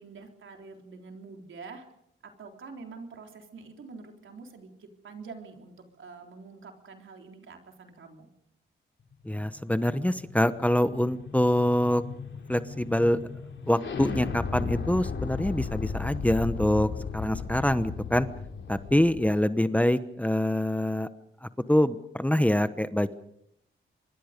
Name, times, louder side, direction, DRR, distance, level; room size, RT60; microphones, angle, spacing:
voice 1, 0.0-1.9 2.2-8.3, right 4 dB, 75° right, 3 dB, 3.8 m, -46 dB
sound 1, 9.1-19.3, left 5 dB, 65° left, 3.4 m, -36 dB
voice 2, 9.2-12.0 12.5-13.2 13.7-18.3 18.7-21.1 21.4-23.1, left 1 dB, 5° left, 12 dB, 1.0 m, -25 dB
25.5 x 22.5 x 5.2 m, 0.76 s
cardioid pair, 75°, 21 cm